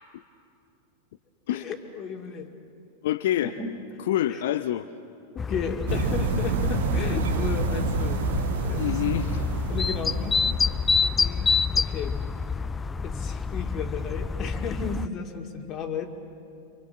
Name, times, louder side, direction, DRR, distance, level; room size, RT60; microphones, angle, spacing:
voice 1, 1.5-2.5 3.4-3.7 4.3-4.4 5.3-8.4 8.7-9.0 9.7-10.5 11.2-12.2 13.0-16.1, left 5 dB, 30° left, 3 dB, 2.3 m, -34 dB
voice 2, 3.0-3.5 4.0-4.9 8.7-9.5, left 12 dB, 55° left, 11 dB, 0.7 m, -26 dB
sound 1, 5.4-15.1, left 5 dB, 15° left, 0.5 m, -28 dB
sound 2, 5.9-10.9, right 4 dB, 60° right, 1.6 m, -28 dB
27.0 x 26.0 x 7.5 m, 2.6 s
figure-of-eight pair, 90°, 0 cm